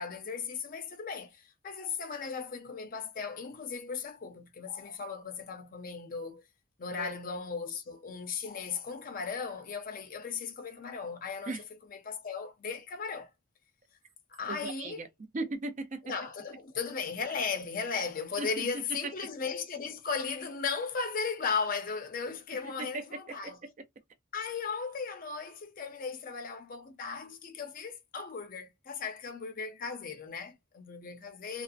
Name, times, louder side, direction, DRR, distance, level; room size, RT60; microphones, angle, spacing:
voice 1, 0.0-6.4 6.8-11.5 12.1-13.3 14.3-15.0 16.0-23.6 24.3-31.6, left 5 dB, 45° left, 0.5 m, -36 dB
voice 2, 14.5-16.1 18.4-19.1 22.6-23.5, right 2 dB, 40° right, 0.4 m, -38 dB
2.6 x 2.0 x 2.4 m
head